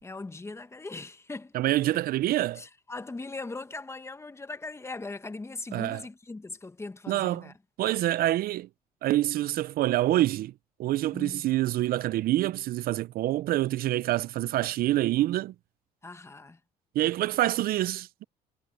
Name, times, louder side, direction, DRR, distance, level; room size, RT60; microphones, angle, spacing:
voice 1, 0.0-1.6 2.5-7.5 11.1-11.5 16.0-16.6 17.3-17.4, left 3 dB, 15° left, 1.2 m, -40 dB
voice 2, 1.5-2.6 5.7-6.0 7.1-7.5 7.8-8.7 9.0-10.5 10.8-15.5 17.0-18.2, right 15 dB, 60° right, 0.4 m, -26 dB
cardioid pair, 110°, 17 cm